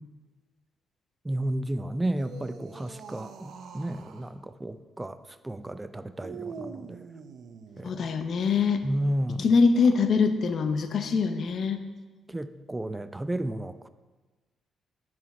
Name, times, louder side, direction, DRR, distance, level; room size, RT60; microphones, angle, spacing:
voice 1, 1.2-7.1 7.8-8.1 8.8-9.5 12.3-13.9, right 1 dB, 15° right, 12 dB, 0.4 m, -32 dB
sound 1, 2.0-4.3 6.2-8.0 9.6-10.1, right 5 dB, 65° right, 0.7 m, -44 dB
voice 2, 7.8-8.8 9.4-11.8, left 5 dB, 55° left, 8 dB, 0.8 m, -23 dB
9.5 x 6.1 x 4.4 m, 1.3 s
cardioid pair, 90°, 0 cm